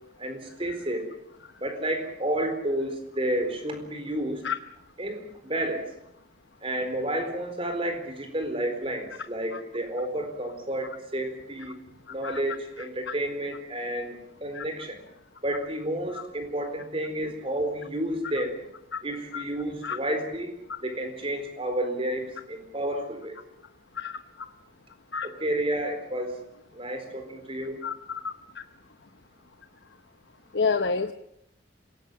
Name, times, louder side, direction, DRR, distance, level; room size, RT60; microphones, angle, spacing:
voice 1, 0.2-1.1 1.6-4.5 5.0-5.8 6.6-11.8 12.1-15.0 15.4-18.6 19.0-20.5 20.8-23.4 25.2-26.4 26.7-27.8, right 1 dB, 30° right, 7 dB, 4.3 m, -31 dB
voice 2, 27.8-28.6 30.5-31.1, left 5 dB, 70° left, 9 dB, 0.9 m, -29 dB
26.0 x 18.0 x 7.4 m, 0.76 s
head